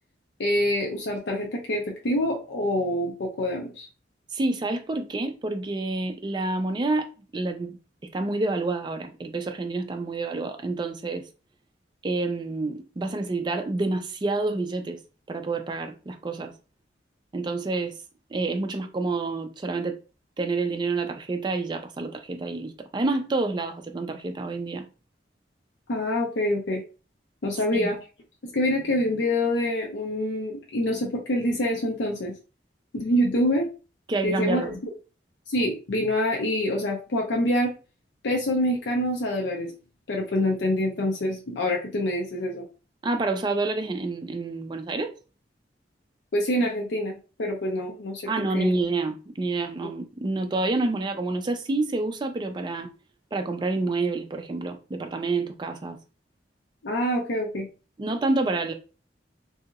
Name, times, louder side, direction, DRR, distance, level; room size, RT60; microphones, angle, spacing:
voice 1, 0.4-3.9 25.9-26.8 27.4-28.0 28.5-32.3 32.9-33.7 34.2-34.7 35.5-37.7 38.2-39.7 40.1-42.7 46.3-48.7 49.8-49.9 56.8-57.7, left 1 dB, 70° left, 0.5 m, -26 dB
voice 2, 4.3-11.3 12.0-15.0 15.3-16.5 17.3-17.9 18.3-20.0 20.4-24.9 27.7-27.9 34.1-34.8 43.0-45.1 48.3-52.9 53.3-56.0 58.0-58.7, right 3 dB, 25° right, 0.3 m, -28 dB
2.8 x 2.7 x 2.4 m
head